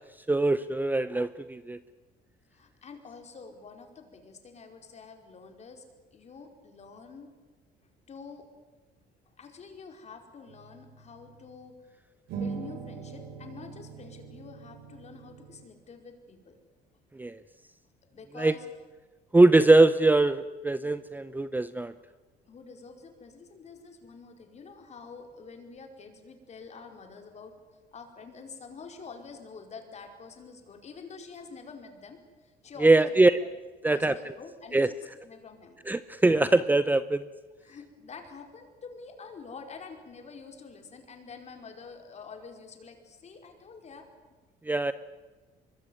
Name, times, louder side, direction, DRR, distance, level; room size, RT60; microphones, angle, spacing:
voice 1, 0.3-1.8 17.2-17.4 18.4-18.5 19.3-21.9 32.8-33.4 33.8-34.1 34.7-34.9 35.9-37.2 44.7-44.9, right 2 dB, 10° right, 13 dB, 0.7 m, -22 dB
voice 2, 2.5-5.9 6.1-7.3 8.1-8.5 9.4-11.8 12.3-16.6 18.1-18.7 22.5-27.5 27.9-33.5 33.8-35.8 37.6-44.1, left 5 dB, 40° left, 5 dB, 4.8 m, -47 dB
sound 1, 10.5-11.6 12.3-15.6, right 6 dB, 85° right, 3.2 m, -41 dB
24.0 x 22.0 x 9.5 m, 1.3 s
cardioid pair, 110°, 17 cm